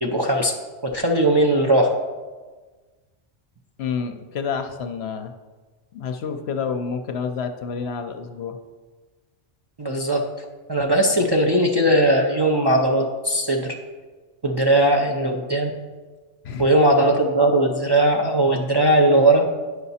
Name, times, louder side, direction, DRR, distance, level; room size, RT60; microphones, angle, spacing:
voice 1, 0.0-0.5 0.8-1.9 9.8-10.2 10.7-13.7 14.4-15.7 16.6-19.4, right 1 dB, 25° right, -1 dB, 0.6 m, -19 dB
voice 2, 3.8-5.3 5.9-8.6 16.4-16.7, left 6 dB, 65° left, 6 dB, 0.8 m, -29 dB
9.8 x 5.7 x 4.2 m, 1.3 s
omnidirectional pair, 1.2 m